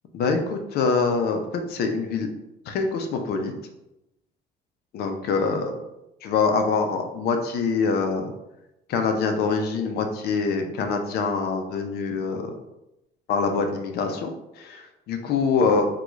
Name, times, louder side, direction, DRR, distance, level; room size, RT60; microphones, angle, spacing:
voice 1, 0.1-1.4 1.7-2.3 2.7-3.5 4.9-5.8 6.2-8.3 8.9-12.5 13.3-15.9, left 4 dB, 70° left, 5 dB, 0.6 m, -24 dB
3.6 x 2.3 x 3.1 m, 0.90 s
cardioid pair, 110°, 17 cm